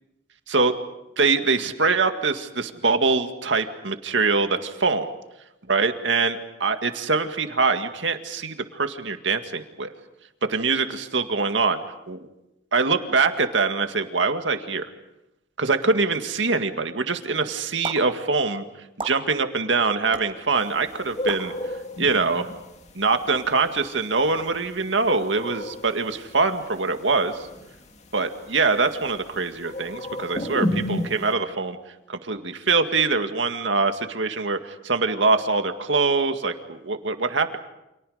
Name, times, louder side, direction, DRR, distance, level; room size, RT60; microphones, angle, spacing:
voice 1, 1.2-5.1 5.7-9.9 10.5-11.8 12.1-12.2 12.7-14.9 15.6-18.6 19.0-21.5 22.0-22.5 23.0-27.5 28.1-31.8 32.1-37.6, right 4 dB, 80° right, 7 dB, 2.0 m, -23 dB
sound 1, 17.8-18.0 19.0-19.2 20.1-20.2 21.3-21.4, right 3 dB, 30° right, 3.9 m, -32 dB
sound 2, 20.6-31.3, left 1 dB, 35° left, 2.1 m, -33 dB
30.0 x 27.5 x 5.1 m, 0.91 s
head